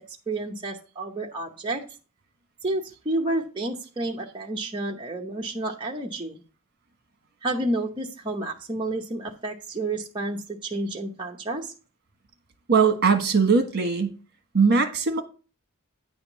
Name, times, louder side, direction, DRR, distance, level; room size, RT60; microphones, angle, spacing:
voice 1, 0.3-1.8 2.6-6.4 7.4-11.7, right 2 dB, 20° right, 0.9 m, -30 dB
voice 2, 12.7-14.1 14.5-15.2, right 5 dB, 50° right, 1.4 m, -20 dB
9.9 x 3.6 x 7.1 m
head